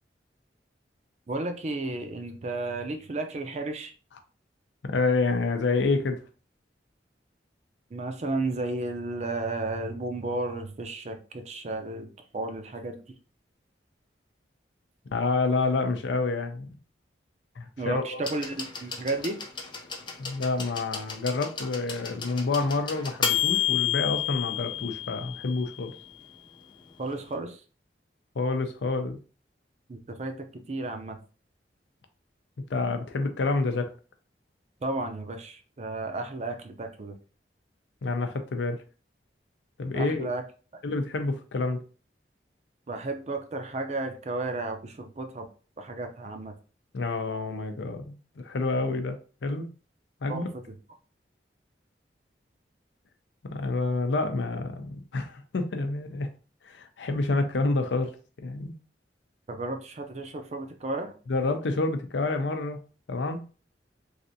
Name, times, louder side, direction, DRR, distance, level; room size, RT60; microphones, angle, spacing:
voice 1, 1.3-3.9 7.9-13.0 17.8-19.4 27.0-27.6 29.9-30.3 30.7-31.2 34.8-37.2 39.9-40.4 42.9-45.5 45.8-46.6 50.3-50.6 59.5-61.1, right 2 dB, 40° right, 6 dB, 0.5 m, -33 dB
voice 2, 4.9-6.2 15.1-16.7 17.6-18.3 20.2-25.9 28.4-29.2 32.7-33.9 38.0-38.8 39.8-40.3 40.8-41.8 46.9-49.7 50.2-50.5 53.4-56.3 56.6-58.2 58.4-58.8 61.3-62.8 63.1-63.4, left 3 dB, 90° left, 6 dB, 0.5 m, -28 dB
sound 1, 18.2-26.0 27.1-27.2, left 9 dB, 25° left, 0.5 m, -31 dB
3.2 x 2.6 x 2.6 m, 0.37 s
head